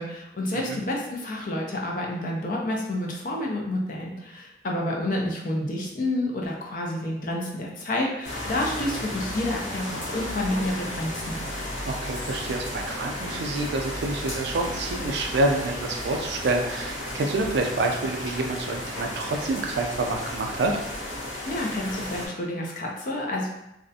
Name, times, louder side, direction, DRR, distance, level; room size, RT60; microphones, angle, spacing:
voice 1, 0.0-11.4 21.4-23.5, left 1 dB, 45° left, -1 dB, 0.4 m, -29 dB
sound 1, 8.2-22.3, left 1 dB, 70° left, 0.9 m, -34 dB
voice 2, 11.8-20.7, right 2 dB, 65° right, 2 dB, 0.3 m, -27 dB
2.4 x 2.1 x 2.6 m, 0.85 s
head